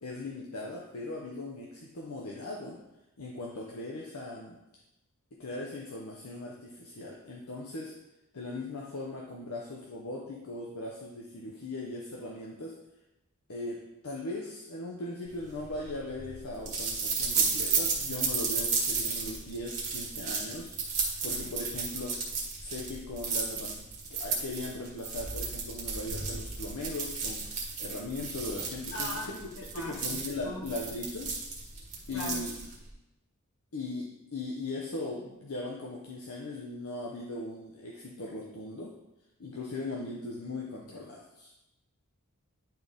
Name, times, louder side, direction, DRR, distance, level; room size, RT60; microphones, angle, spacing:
voice 1, 0.0-2.8 3.2-4.6 5.3-8.0 8.3-12.8 13.5-20.7 21.2-22.2 22.6-23.8 24.1-29.3 29.7-31.4 32.1-32.5 33.7-39.0 39.4-41.5, left 2 dB, 80° left, -2 dB, 0.9 m, -39 dB
sound 1, 15.4-32.9, right 4 dB, 35° right, 1.7 m, -33 dB
voice 2, 28.9-30.7 32.1-32.4, left 2 dB, 60° left, -3 dB, 1.8 m, -41 dB
10.5 x 3.8 x 3.5 m, 0.92 s
head